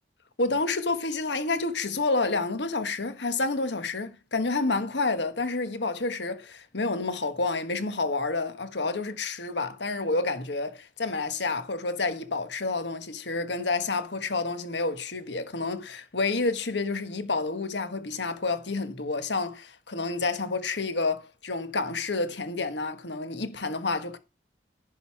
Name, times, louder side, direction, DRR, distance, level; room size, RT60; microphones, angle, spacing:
voice 1, 0.4-24.2, left 3 dB, 75° left, 1.4 m, -29 dB
11.0 x 5.3 x 5.9 m
head